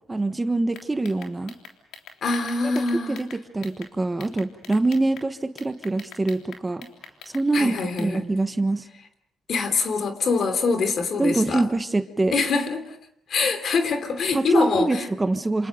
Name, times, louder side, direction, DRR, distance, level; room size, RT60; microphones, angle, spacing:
voice 1, 0.1-1.5 3.1-6.9 7.3-8.9 11.2-12.4 14.3-15.7, right 2 dB, 20° right, 1.3 m, -24 dB
sound 1, 0.7-3.9 4.2-5.3 5.6-8.1, left 6 dB, 80° left, 3.6 m, -44 dB
voice 2, 2.2-3.2 7.5-8.2 9.5-11.6 12.3-12.9 13.3-15.1, left 4 dB, 55° left, 3.1 m, -24 dB
28.0 x 27.5 x 5.2 m
cardioid pair, 90°, 0 cm